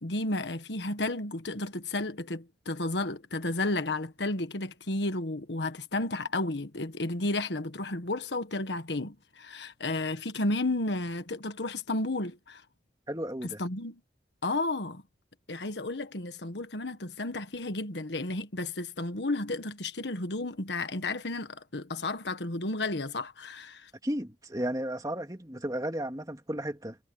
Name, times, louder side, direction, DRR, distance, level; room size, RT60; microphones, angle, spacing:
voice 1, 0.0-12.6 13.6-14.0 14.4-15.0 15.5-23.9, left 2 dB, 75° left, 1.5 m, -32 dB
voice 2, 13.1-13.6 24.0-27.0, right 1 dB, 20° right, 2.7 m, -34 dB
head